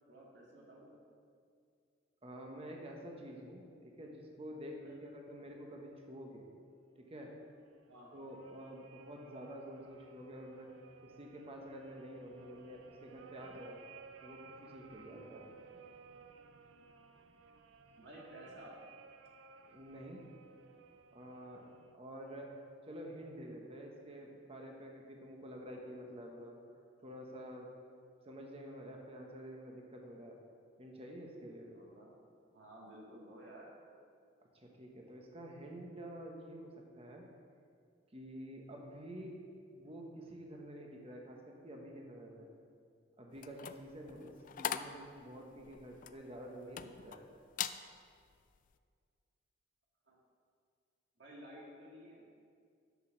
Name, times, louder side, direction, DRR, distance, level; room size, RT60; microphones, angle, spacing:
voice 1, 0.1-1.0 4.7-5.2 7.9-8.1 15.0-15.3 18.0-18.8 31.7-32.1 32.5-33.7 50.0-50.2 51.2-52.3, right 1 dB, 65° right, -4 dB, 2.1 m, -54 dB
voice 2, 2.2-6.5 7.0-7.4 8.1-10.8 11.0-13.8 14.2-15.6 19.7-20.2 21.1-22.6 22.9-26.6 27.0-27.7 28.2-30.4 30.8-31.8 34.5-37.3 38.1-39.4 39.7-42.5 43.2-47.3, equal, 30° right, 0 dB, 1.0 m, -49 dB
sound 1, 7.6-21.9, right 4 dB, 85° right, 0.5 m, -58 dB
sound 2, 43.4-47.2 47.5-47.8 48.3-48.6, left 9 dB, 45° left, 0.3 m, -41 dB
9.4 x 6.2 x 5.9 m, 2.2 s
head